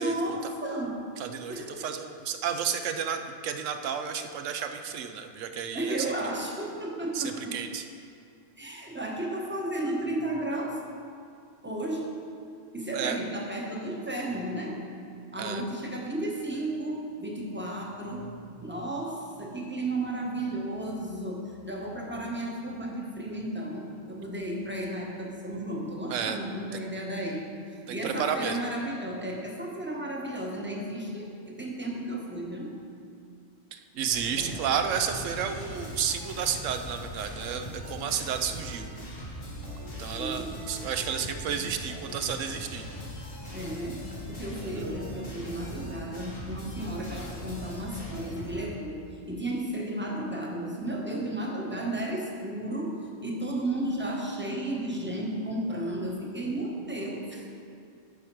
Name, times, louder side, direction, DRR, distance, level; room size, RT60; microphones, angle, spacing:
voice 1, 0.0-1.0 1.5-1.9 5.7-7.6 8.6-10.9 11.6-12.1 12.7-14.8 15.3-27.4 27.9-32.8 34.4-34.5 40.1-40.6 43.5-57.5, right 1 dB, 10° right, -1 dB, 0.9 m, -33 dB
voice 2, 1.2-6.1 7.1-7.8 12.9-13.2 15.4-15.6 26.1-26.4 26.7-26.8 27.9-28.6 33.7-38.9 40.0-42.9 44.6-44.8, right 7 dB, 80° right, 7 dB, 1.0 m, -32 dB
sound 1, 34.1-48.6, equal, 80° left, 2.4 m, -40 dB
12.0 x 5.0 x 4.6 m, 2.3 s
omnidirectional pair, 1.3 m